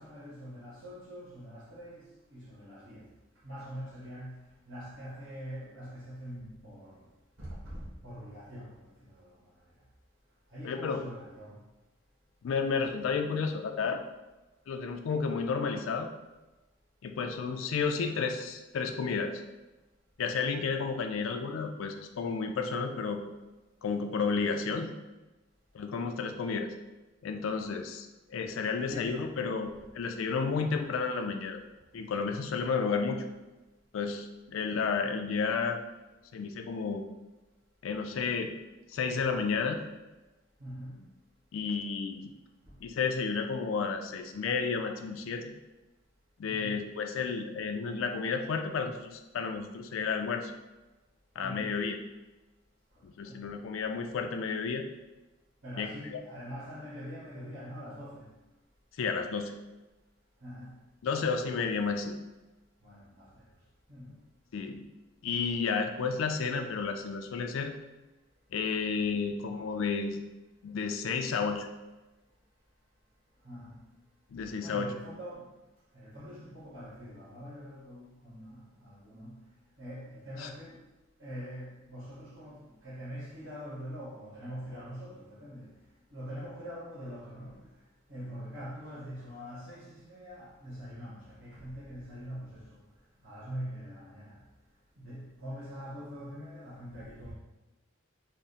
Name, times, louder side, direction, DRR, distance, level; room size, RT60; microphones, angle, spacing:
voice 1, 0.0-3.1 3.4-7.0 7.4-9.3 10.5-11.6 28.8-29.3 30.5-30.8 40.6-41.0 46.4-46.8 51.4-51.8 53.2-53.5 55.6-58.3 60.4-60.8 62.8-63.4 63.9-64.1 73.4-73.8 74.6-75.5 75.9-79.4 79.8-80.8 81.2-85.7 86.1-87.7 88.1-92.8 93.2-94.4 95.0-97.3, equal, 65° right, 1.3 m, -44 dB
voice 2, 10.6-11.0 12.4-14.0 14.7-16.1 17.0-19.4 20.2-23.2 23.8-24.9 25.7-26.7 27.2-31.6 31.9-33.2 33.9-35.8 36.3-37.0 37.8-38.5 38.9-39.8 41.5-42.3 42.8-45.5 46.4-50.5 51.4-52.0 53.0-54.9 55.8-56.2 59.0-59.5 61.0-62.2 64.5-64.9 65.2-67.7 68.5-70.2 70.6-71.7 74.3-74.9 80.4-80.5, left 5 dB, 85° left, 0.4 m, -32 dB
3.6 x 2.1 x 4.1 m
head